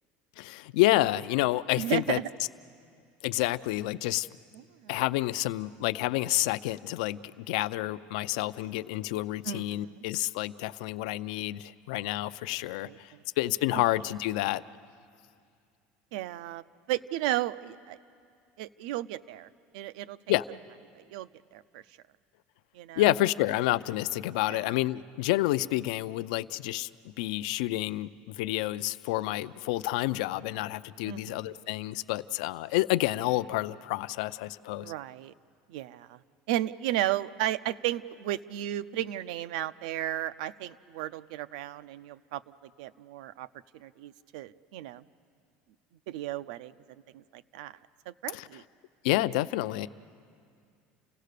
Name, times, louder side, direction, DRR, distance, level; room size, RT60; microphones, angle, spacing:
voice 1, 0.4-2.2 3.2-4.3 4.9-14.6 20.3-20.4 23.0-34.9 48.3-48.5 49.0-49.9, left 17 dB, 75° left, 14 dB, 0.5 m, -29 dB
voice 2, 1.8-2.3 4.5-4.9 9.4-10.0 12.8-13.2 13.7-13.8 16.1-18.0 18.6-19.5 19.7-20.2 20.9-21.8 22.7-23.0 24.5-24.6 31.0-31.6 34.8-35.3 35.7-36.2 36.5-43.5 43.7-45.0 46.1-46.7 47.1-47.8 48.1-48.6, right 13 dB, 80° right, 15 dB, 0.6 m, -34 dB
30.0 x 17.0 x 6.7 m, 2.3 s
cardioid pair, 180°, 4 cm